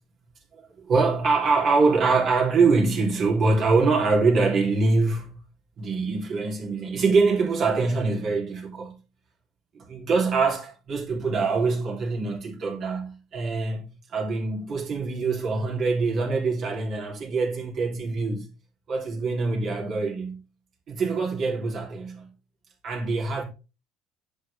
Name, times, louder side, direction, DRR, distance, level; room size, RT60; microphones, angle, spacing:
voice 1, 0.5-5.3 5.8-9.0 9.7-18.5 18.9-20.4 20.9-22.3 22.8-23.4, right 4 dB, 50° right, 3.5 m, -24 dB
10.0 x 6.7 x 3.6 m
hypercardioid pair, 60°, 0 cm